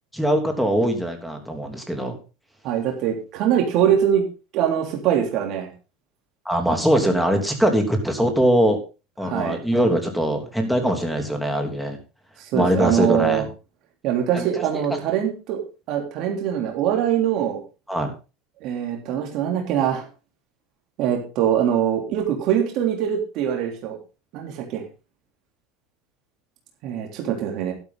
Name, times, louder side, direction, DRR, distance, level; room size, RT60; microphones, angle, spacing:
voice 1, 0.1-2.2 6.4-8.8 9.2-12.0 12.5-13.4 14.3-14.4 14.7-15.0 17.9-18.1, equal, ahead, 4 dB, 3.1 m, -22 dB
voice 2, 2.6-4.2 4.5-5.7 9.2-9.6 12.4-13.4 14.0-15.6 15.9-17.6 18.6-20.1 21.0-24.0 24.3-24.8 26.8-27.7, right 9 dB, 50° right, 2 dB, 3.3 m, -23 dB
12.0 x 11.5 x 3.9 m, 0.31 s
supercardioid pair, 140°, 0 cm